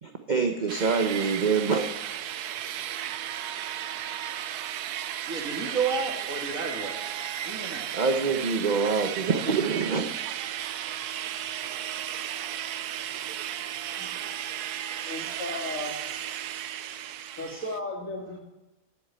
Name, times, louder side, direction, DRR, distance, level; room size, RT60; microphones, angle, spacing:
voice 1, 0.0-1.9 7.9-10.0, right 5 dB, 40° right, 4 dB, 0.8 m, -25 dB
sound 1, 0.7-17.8, right 11 dB, 85° right, 1.2 m, -34 dB
voice 2, 5.3-7.0 7.4-7.9 11.3-11.5, right 5 dB, 60° right, 3 dB, 2.1 m, -31 dB
voice 3, 15.0-16.0 17.4-18.4, left 2 dB, 60° left, -1 dB, 3.1 m, -35 dB
11.0 x 7.8 x 8.7 m, 1.0 s
omnidirectional pair, 1.6 m